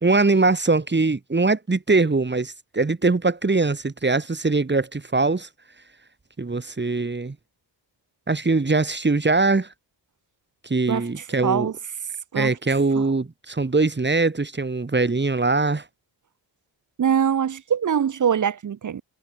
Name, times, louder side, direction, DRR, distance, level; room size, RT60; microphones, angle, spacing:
voice 1, 0.0-5.5 6.4-7.4 8.3-9.7 10.6-11.7 12.4-15.8, right 3 dB, 25° right, 4.0 m, -22 dB
voice 2, 11.4-11.7 12.3-12.5 17.0-19.0, right 8 dB, 40° right, 0.9 m, -22 dB
cardioid pair, 105°, 44 cm